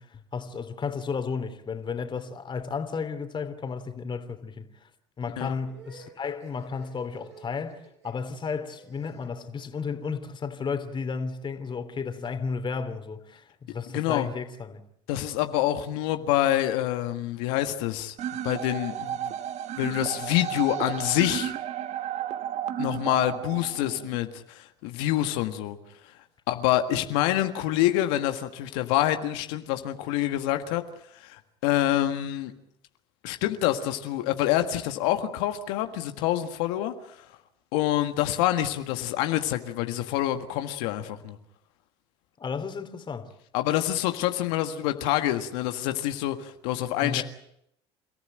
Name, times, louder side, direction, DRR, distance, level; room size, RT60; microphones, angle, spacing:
voice 1, 0.0-4.9 5.2-14.8 42.4-43.3 47.0-47.2, left 5 dB, 35° left, 3.1 m, -33 dB
sound 1, 5.6-10.3, right 4 dB, 85° right, 6.2 m, -51 dB
voice 2, 13.9-14.3 15.1-18.1 18.4-19.3 19.8-21.5 22.8-25.8 26.5-30.8 31.1-32.5 33.2-37.2 37.7-41.4 43.5-47.2, left 13 dB, 75° left, 1.7 m, -26 dB
sound 2, 18.2-24.2, right 10 dB, 55° right, 1.4 m, -33 dB
30.0 x 14.5 x 9.0 m
hypercardioid pair, 75°, 14 cm